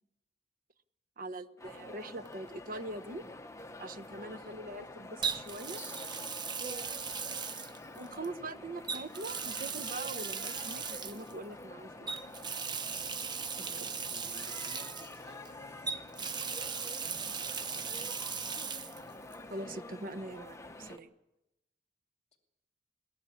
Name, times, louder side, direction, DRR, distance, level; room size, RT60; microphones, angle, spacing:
voice 1, 1.2-3.2 3.8-5.8 6.6-7.2 7.9-12.1 13.8-13.9 19.5-21.1, right 2 dB, 50° right, 10 dB, 1.0 m, -43 dB
sound 1, 1.6-21.0, left 1 dB, 15° left, 1.2 m, -48 dB
Water tap faucet, 2.3-2.5 5.2-8.3 8.8-11.3 12.1-15.5 15.9-19.0 19.3-19.4 21.0-21.1, right 6 dB, 25° right, 0.9 m, -38 dB
voice 2, 13.6-18.9 22.3-22.4, left 2 dB, 35° left, 3 dB, 2.6 m, -57 dB
22.0 x 18.0 x 8.6 m, 0.93 s
head